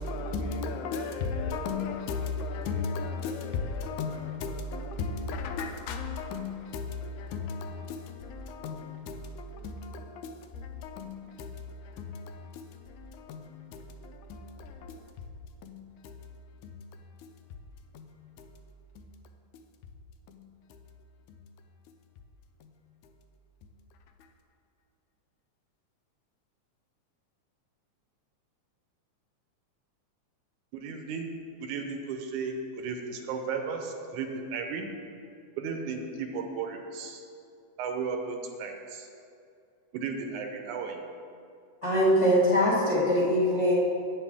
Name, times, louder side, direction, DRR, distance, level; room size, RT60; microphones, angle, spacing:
voice 1, 0.0-15.1 15.6-16.2 16.6-16.8 17.2-17.3 17.9-18.5 19.0-19.1 19.5-19.6 20.3-20.8 21.3-21.4 22.6-22.8 23.6-23.7, left 4 dB, 85° left, 2.0 m, -36 dB
voice 2, 30.7-31.3 31.6-34.9 35.6-37.2 37.8-39.1 39.9-41.0, right 5 dB, 85° right, 2.2 m, -35 dB
voice 3, 41.8-43.7, equal, 40° left, 1.1 m, -22 dB
8.9 x 8.0 x 3.6 m
omnidirectional pair, 3.4 m